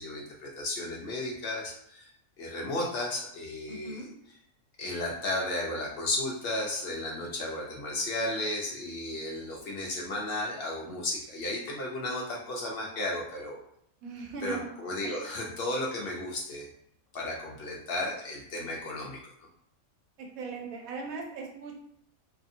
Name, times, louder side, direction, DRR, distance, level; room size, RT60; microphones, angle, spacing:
voice 1, 0.0-2.1 2.4-4.0 4.8-13.6 14.4-16.7 17.1-19.2, left 1 dB, 65° left, -2 dB, 0.5 m, -34 dB
voice 2, 3.7-4.1 14.0-14.7 15.0-15.2 20.2-21.7, right 4 dB, 75° right, 0 dB, 1.1 m, -39 dB
2.7 x 2.6 x 2.5 m, 0.75 s
omnidirectional pair, 1.5 m